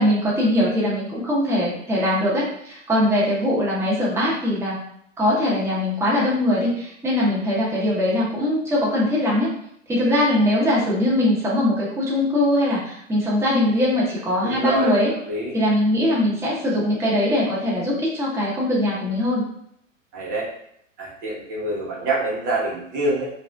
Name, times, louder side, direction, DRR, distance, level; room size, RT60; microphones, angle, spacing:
voice 1, 0.0-4.8 5.2-9.5 9.9-15.1 15.5-19.4, left 1 dB, 5° right, -6 dB, 0.8 m, -21 dB
voice 2, 14.4-14.9 15.3-15.5 20.1-20.5 21.0-23.3, right 2 dB, 35° right, -4 dB, 1.0 m, -25 dB
2.6 x 2.0 x 3.3 m, 0.71 s
hypercardioid pair, 110°, 39 cm